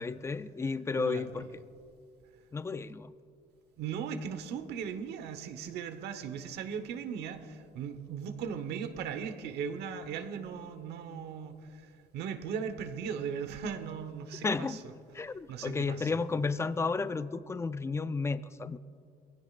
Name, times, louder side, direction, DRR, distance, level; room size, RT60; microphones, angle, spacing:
voice 1, 0.0-1.5 2.5-3.1 14.4-14.8 15.1-18.8, left 4 dB, 15° left, 14 dB, 0.4 m, -32 dB
voice 2, 0.9-1.4 3.8-14.8 15.5-16.1, right 7 dB, 80° right, 9 dB, 1.1 m, -38 dB
22.5 x 16.5 x 2.5 m, 2.4 s
cardioid pair, 110°, 17 cm